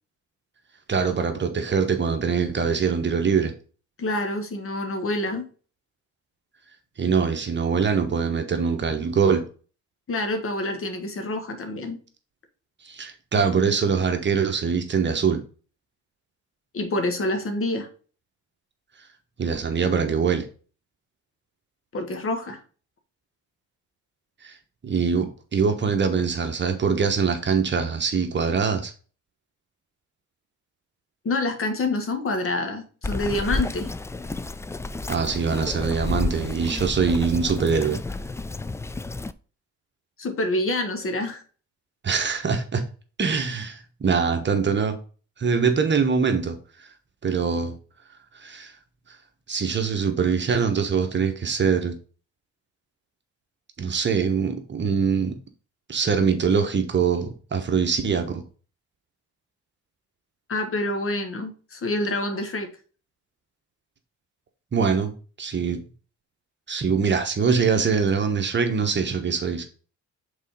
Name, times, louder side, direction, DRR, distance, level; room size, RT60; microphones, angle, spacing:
voice 1, 0.9-3.5 7.0-9.4 12.8-15.4 19.4-20.4 24.4-24.6 24.8-28.9 35.1-38.0 42.0-42.8 43.2-45.0 45.4-46.9 47.2-47.8 48.3-48.7 49.5-52.0 53.8-55.4 55.9-58.4 64.7-65.1 65.4-65.8 66.7-69.6, right 5 dB, 35° right, 1.2 m, -23 dB
voice 2, 4.0-5.5 10.1-12.0 16.7-17.9 21.9-22.6 31.2-33.9 40.2-41.4 60.5-62.7, left 2 dB, 45° left, 1.6 m, -27 dB
Bird vocalization bird call bird song, 33.0-39.3, left 2 dB, 10° left, 0.3 m, -31 dB
5.4 x 4.1 x 5.0 m
cardioid pair, 90°, 30 cm